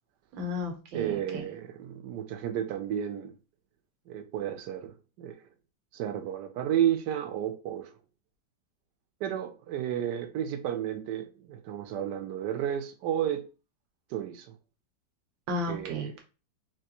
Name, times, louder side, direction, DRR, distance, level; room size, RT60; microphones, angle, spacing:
voice 1, 0.3-1.4 15.5-16.2, left 1 dB, 90° right, 1.6 m, -34 dB
voice 2, 0.9-3.3 4.1-5.4 5.9-7.9 9.2-13.4 14.1-14.6 15.7-16.1, right 10 dB, 75° right, 1.1 m, -32 dB
3.4 x 3.0 x 2.9 m
omnidirectional pair, 2.0 m